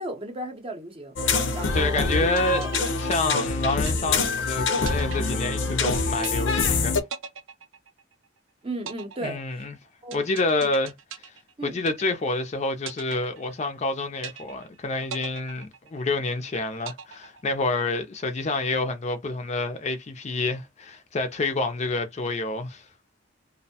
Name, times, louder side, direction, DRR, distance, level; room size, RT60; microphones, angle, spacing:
voice 1, 0.0-2.7 8.6-9.7 10.0-10.2 10.6-10.7 11.6-11.8, right 1 dB, 30° right, 0.6 m, -35 dB
sound 1, 1.2-7.0, left 4 dB, 75° left, 0.6 m, -25 dB
voice 2, 1.7-2.6 3.0-7.0 9.2-9.7 10.1-10.9 11.6-22.8, left 2 dB, 35° left, 0.4 m, -28 dB
sound 2, 2.1-4.4 4.9-5.9 6.2-6.8 7.1-8.4 8.9-12.4 12.9-13.9 14.2-14.8 15.1-16.4 16.9-17.9, right 6 dB, 80° right, 0.5 m, -40 dB
2.6 x 2.0 x 2.7 m
head